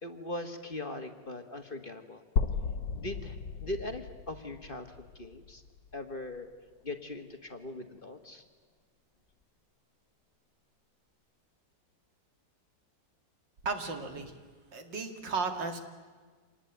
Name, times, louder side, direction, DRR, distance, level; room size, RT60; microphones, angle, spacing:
voice 1, 0.0-2.2 2.9-5.6 5.9-6.5 6.8-8.4, left 2 dB, 30° left, 6 dB, 1.6 m, -40 dB
sound 1, 2.4-6.3, left 5 dB, 85° left, 1.7 m, -35 dB
voice 2, 13.6-14.4 14.7-15.8, right 4 dB, 85° right, 6 dB, 2.9 m, -34 dB
26.5 x 19.5 x 9.1 m, 1.5 s
omnidirectional pair, 1.9 m